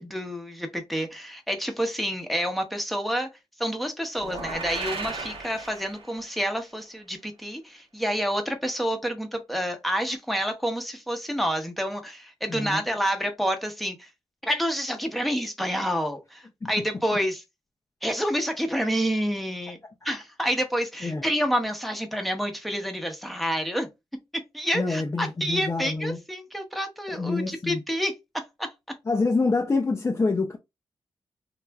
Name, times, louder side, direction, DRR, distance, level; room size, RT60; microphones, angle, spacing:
voice 1, 0.0-3.3 3.6-14.1 14.4-17.4 18.0-19.8 20.0-23.9 24.5-28.7, equal, ahead, 0.8 m, -28 dB
sound 1, 4.2-6.4, right 3 dB, 70° right, 1.0 m, -35 dB
voice 2, 12.5-12.8 16.6-16.7 21.0-21.2 24.7-26.2 27.1-27.8 29.1-30.6, left 3 dB, 25° left, 0.4 m, -26 dB
3.1 x 2.4 x 2.2 m
cardioid pair, 65°, 10 cm